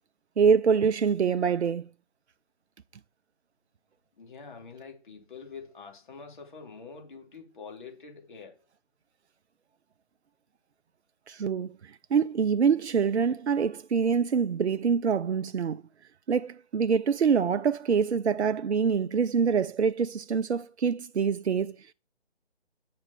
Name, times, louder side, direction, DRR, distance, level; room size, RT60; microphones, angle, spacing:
voice 1, 0.4-1.9 11.3-15.8 16.3-21.9, right 6 dB, 75° right, 0.5 m, -25 dB
voice 2, 4.2-8.6, left 5 dB, 45° left, 3.3 m, -46 dB
9.7 x 7.0 x 4.3 m
figure-of-eight pair, 150°, 33 cm